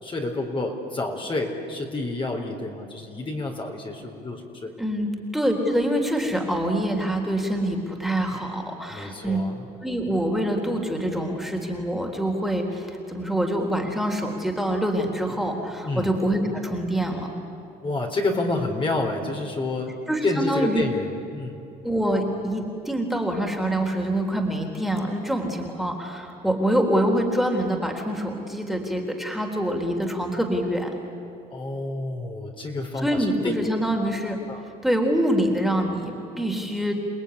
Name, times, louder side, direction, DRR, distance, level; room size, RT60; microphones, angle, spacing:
voice 1, 0.0-4.7 8.9-9.5 15.8-16.2 17.8-19.9 20.2-21.6 31.5-33.5 34.5-34.6, left 2 dB, 30° left, 2 dB, 3.9 m, -29 dB
voice 2, 4.8-9.4 9.8-17.3 20.1-20.9 21.8-30.9 33.0-34.4 34.8-36.9, right 1 dB, ahead, 2 dB, 3.7 m, -25 dB
29.5 x 19.0 x 9.9 m, 2.8 s
cardioid pair, 110°, 17 cm